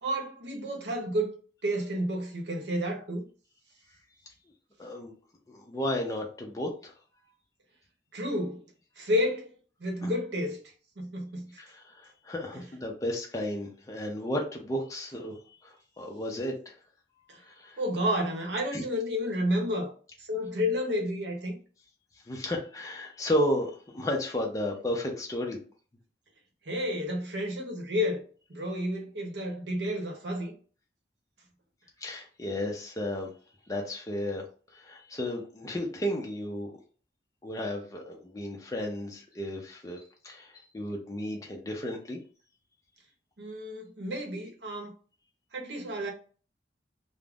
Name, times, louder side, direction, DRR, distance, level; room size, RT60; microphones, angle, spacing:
voice 1, 0.0-1.4 1.6-3.3 8.1-8.6 9.0-9.5 9.8-11.6 12.5-12.6 17.3-17.4 17.8-19.9 20.2-21.6 26.6-28.2 28.5-30.6 43.4-44.9 45.5-46.1, equal, 80° right, 0.8 m, -31 dB
voice 2, 4.8-5.1 5.5-6.9 10.0-10.1 11.6-15.3 15.6-16.7 17.4-17.8 18.7-18.8 22.3-25.6 32.0-33.3 33.7-34.5 34.7-36.8 37.4-42.2, left 1 dB, 20° left, 0.4 m, -33 dB
2.4 x 2.0 x 3.4 m
head